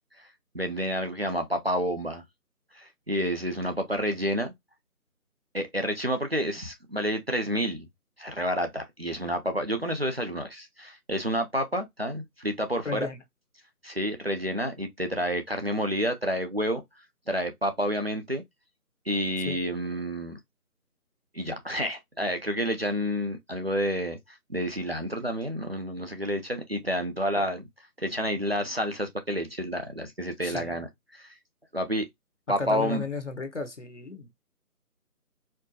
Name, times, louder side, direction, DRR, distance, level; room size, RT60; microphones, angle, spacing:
voice 1, 0.5-2.2 2.7-4.5 5.5-7.9 8.2-13.1 13.8-16.8 17.3-18.4 19.1-20.4 21.3-27.6 28.0-31.3 31.7-32.1 32.5-33.0, equal, 40° right, 0.6 m, -29 dB
voice 2, 12.8-13.2 19.4-19.6 27.3-27.4 30.4-30.8 32.6-34.3, left 4 dB, 50° left, 0.8 m, -34 dB
4.3 x 2.0 x 2.7 m
figure-of-eight pair, 160°, 46 cm